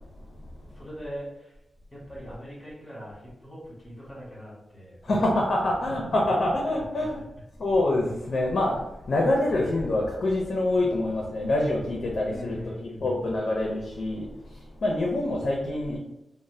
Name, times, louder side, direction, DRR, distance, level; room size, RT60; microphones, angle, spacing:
voice 1, 0.6-1.6 1.9-5.2 5.6-6.4 12.3-13.2, equal, 20° left, -7 dB, 1.4 m, -41 dB
voice 2, 5.1-7.2 7.6-8.7 9.1-12.7 13.0-14.2 14.8-16.0, left 1 dB, 55° left, -1 dB, 0.5 m, -25 dB
2.6 x 2.0 x 3.1 m, 0.91 s
wide cardioid pair, 150°, 0 cm